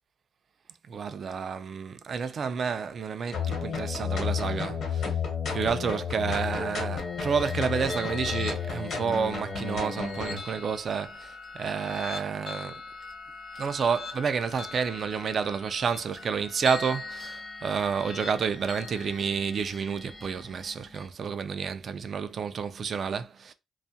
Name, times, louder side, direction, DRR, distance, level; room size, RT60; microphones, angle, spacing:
voice 1, 0.9-5.1 5.5-12.8 13.6-23.5, right 6 dB, 50° right, 0.3 m, -30 dB
sound 1, 3.3-10.4, left 6 dB, 65° left, 0.9 m, -32 dB
sound 2, 7.0-21.1, left 4 dB, 35° left, 0.7 m, -42 dB
2.3 x 2.1 x 2.7 m
cardioid pair, 90°, 0 cm